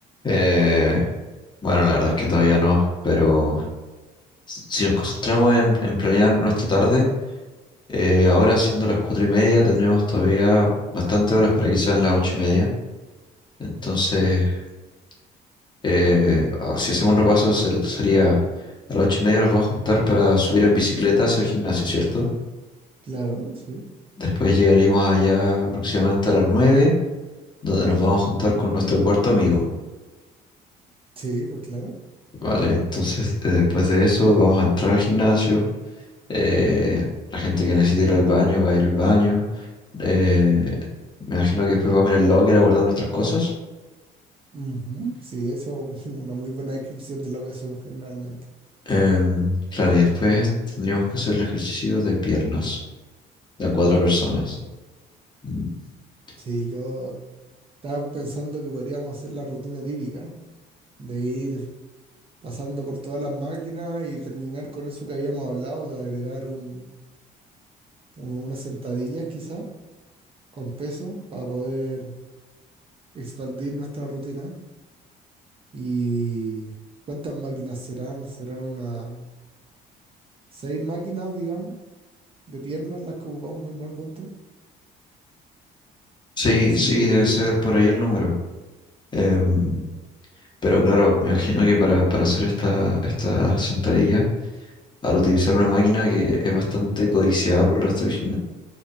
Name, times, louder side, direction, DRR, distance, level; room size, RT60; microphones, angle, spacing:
voice 1, 0.2-1.0 1.6-3.6 4.5-7.1 7.9-12.7 13.6-14.6 15.8-18.4 18.9-22.3 24.2-26.9 27.6-29.6 32.4-35.7 36.3-37.0 37.3-39.7 40.0-40.7 41.3-43.5 48.9-50.5 50.8-52.8 53.6-54.6 55.4-55.7 86.4-88.3 89.1-89.8 90.6-94.2 95.0-98.3, left 2 dB, 25° left, -4 dB, 0.8 m, -19 dB
voice 2, 23.0-23.8 31.2-32.0 44.5-48.4 56.4-57.2 57.8-60.3 61.0-61.7 62.4-66.9 68.2-69.7 70.5-72.2 73.1-74.5 75.7-76.7 77.1-79.2 80.5-81.7 82.5-84.3 86.6-87.6, right 2 dB, 35° right, -1 dB, 0.4 m, -31 dB
2.6 x 2.1 x 2.4 m, 1.2 s
cardioid pair, 110°, 17 cm